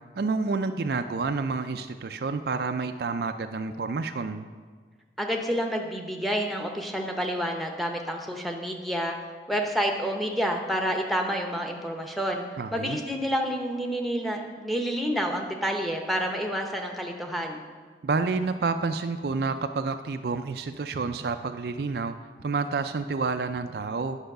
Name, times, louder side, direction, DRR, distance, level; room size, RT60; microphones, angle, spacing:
voice 1, 0.2-4.5 12.6-13.0 18.0-24.2, right 4 dB, 55° right, 8 dB, 0.4 m, -29 dB
voice 2, 5.2-9.2 9.5-12.4 12.7-17.6, equal, ahead, 2 dB, 0.8 m, -29 dB
10.0 x 5.6 x 6.6 m, 1.5 s
head